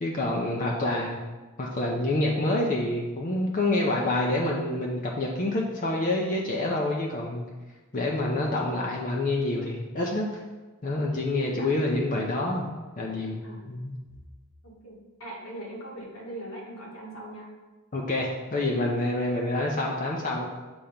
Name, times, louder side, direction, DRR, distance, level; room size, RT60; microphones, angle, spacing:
voice 1, 0.0-1.2 1.6-7.5 7.9-10.3 10.8-12.7 13.0-13.4 13.7-13.9 17.9-20.5, left 2 dB, 40° left, -2 dB, 0.6 m, -27 dB
voice 2, 14.6-17.6, right 1 dB, 80° left, -4 dB, 1.7 m, -41 dB
7.0 x 3.0 x 5.1 m, 1.3 s
head